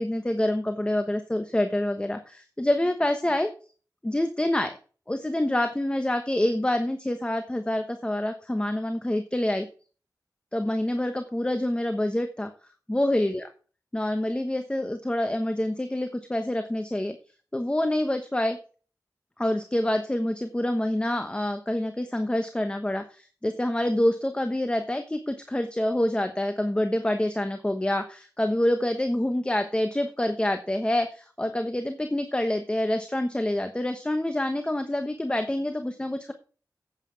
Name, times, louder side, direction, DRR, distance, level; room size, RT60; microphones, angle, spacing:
voice 1, 0.0-3.5 4.0-4.8 5.1-9.7 10.5-12.5 12.9-13.4 13.9-17.2 17.5-18.6 19.4-36.3, left 1 dB, 15° left, 7 dB, 1.0 m, -27 dB
9.4 x 8.2 x 4.7 m, 0.38 s
wide cardioid pair, 90°, 7 cm